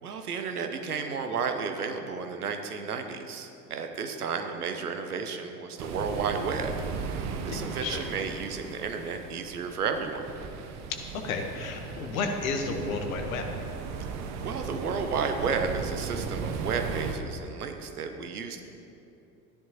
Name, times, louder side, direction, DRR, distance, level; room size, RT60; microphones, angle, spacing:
voice 1, 0.0-7.1 7.4-10.3 14.4-18.6, right 5 dB, 75° right, 6 dB, 1.0 m, -32 dB
sound 1, 5.8-17.1, right 5 dB, 35° right, 0.9 m, -37 dB
voice 2, 7.5-8.0 10.9-13.5, left 4 dB, 60° left, 4 dB, 1.3 m, -32 dB
14.5 x 10.5 x 3.0 m, 2.9 s
figure-of-eight pair, 75°, 46 cm